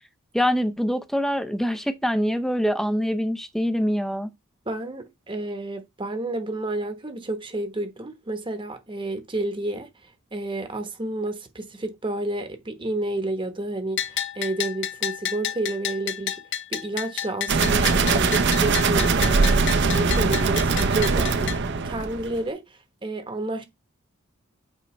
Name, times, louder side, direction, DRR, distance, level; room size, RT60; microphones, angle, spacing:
voice 1, 0.3-4.3, equal, ahead, 0.6 m, -24 dB
voice 2, 4.7-16.3 16.7-23.6, right 2 dB, 25° right, 1.1 m, -30 dB
Bell, 14.0-21.6, left 10 dB, 60° left, 0.5 m, -31 dB
sound 1, 17.5-22.4, right 4 dB, 55° right, 0.7 m, -21 dB
8.6 x 4.5 x 3.2 m
head